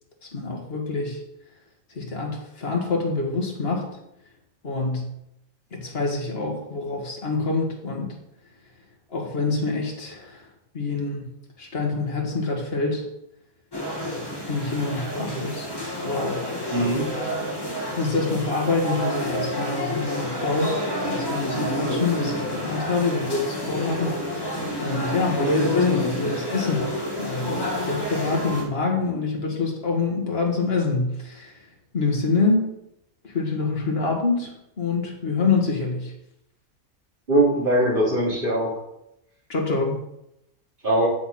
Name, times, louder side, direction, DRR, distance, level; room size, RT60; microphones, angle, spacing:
voice 1, 0.3-1.2 2.0-3.9 4.6-5.1 5.7-8.1 9.1-10.4 10.7-11.3 11.6-13.0 14.5-15.7 16.0-16.4 16.8-17.1 18.0-20.8 21.1-24.5 24.8-26.9 27.2-27.6 27.8-31.5 31.9-32.7 33.2-36.1 39.5-40.0, left 3 dB, 45° left, 0 dB, 1.9 m, -26 dB
sound 1, 13.7-28.6, left 1 dB, 15° left, 1.7 m, -28 dB
voice 2, 16.7-17.0 37.3-38.7 40.8-41.1, right 1 dB, 35° right, -6 dB, 3.3 m, -21 dB
8.0 x 7.0 x 4.3 m, 0.82 s
omnidirectional pair, 1.5 m